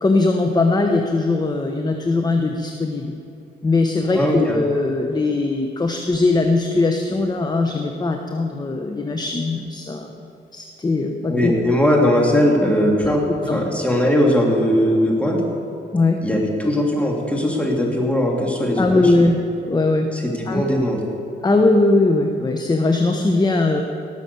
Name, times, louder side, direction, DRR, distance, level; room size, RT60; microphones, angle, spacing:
voice 1, 0.0-3.2 3.6-11.5 13.1-13.2 13.5-13.6 15.9-16.2 18.8-19.4 19.7-20.1 20.5-20.6 21.4-23.8, left 2 dB, 20° left, 4 dB, 0.9 m, -20 dB
voice 2, 4.1-4.6 11.3-13.2 13.5-15.4 16.2-19.1 20.1-21.0, left 1 dB, 5° left, -1 dB, 3.0 m, -19 dB
18.5 x 7.1 x 6.9 m, 2.8 s
cardioid pair, 90°, 18 cm